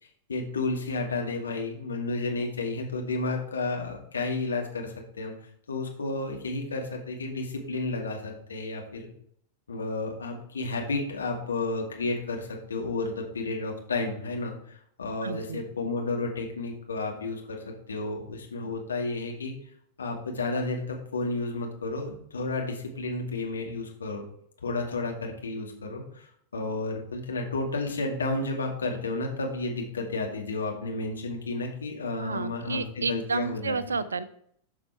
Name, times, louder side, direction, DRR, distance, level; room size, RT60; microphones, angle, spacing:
voice 1, 0.3-5.3 5.7-9.1 9.7-19.5 20.0-24.2 24.6-26.3 26.5-33.7, left 3 dB, 70° left, 1 dB, 2.2 m, -32 dB
voice 2, 15.2-15.6 32.2-34.2, right 4 dB, 75° right, 15 dB, 0.6 m, -31 dB
12.0 x 6.0 x 4.4 m, 0.67 s
figure-of-eight pair, 90°, 0 cm